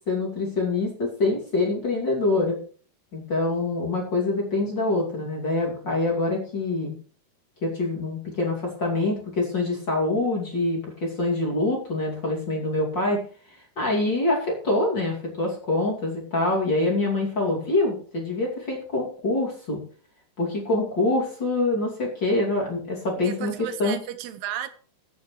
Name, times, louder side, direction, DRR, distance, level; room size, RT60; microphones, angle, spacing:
voice 1, 0.1-2.6 3.1-6.9 7.6-13.2 13.8-19.8 20.4-23.5 23.8-24.0, left 2 dB, 30° left, 2.7 m, -25 dB
voice 2, 23.2-24.7, right 11 dB, 85° right, 3.0 m, -34 dB
22.0 x 8.3 x 3.2 m
omnidirectional pair, 4.6 m